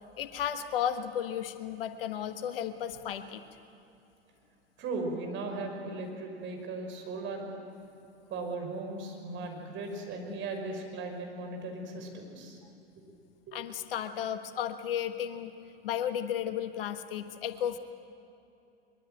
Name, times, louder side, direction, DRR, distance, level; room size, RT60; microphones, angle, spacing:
voice 1, 0.2-3.4 13.5-15.5 15.8-17.8, left 9 dB, 60° left, 9 dB, 1.4 m, -34 dB
voice 2, 4.8-7.5 8.3-12.6 13.5-13.6, right 3 dB, 40° right, 3 dB, 5.7 m, -37 dB
23.5 x 22.5 x 9.1 m, 2.7 s
figure-of-eight pair, 80°, 31 cm